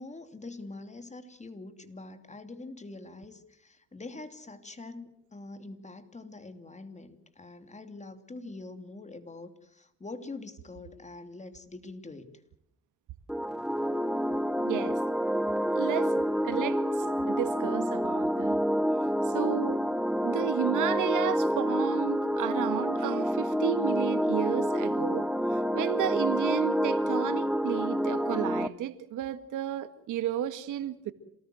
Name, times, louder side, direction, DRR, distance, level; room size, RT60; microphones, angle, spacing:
voice 1, 0.0-12.4, left 3 dB, 25° left, 2.9 m, -44 dB
sound 1, 13.3-28.7, equal, ahead, 0.9 m, -28 dB
voice 2, 14.6-15.0 15.7-16.8 17.3-18.6 19.3-19.8 20.2-25.3 25.7-31.1, right 11 dB, 85° right, 1.8 m, -32 dB
27.5 x 19.0 x 7.8 m
cardioid pair, 90°, 30 cm